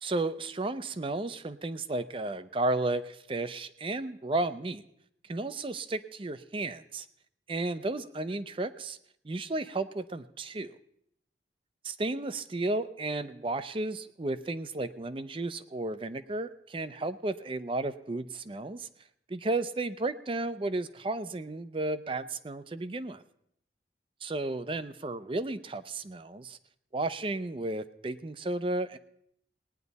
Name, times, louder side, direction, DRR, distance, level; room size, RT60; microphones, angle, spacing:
voice 1, 0.0-4.8 5.3-7.1 7.5-9.0 9.2-10.7 11.9-18.9 19.3-23.2 24.2-26.6 26.9-29.0, right 2 dB, 30° right, 13 dB, 0.5 m, -33 dB
19.0 x 9.9 x 4.1 m, 0.72 s
head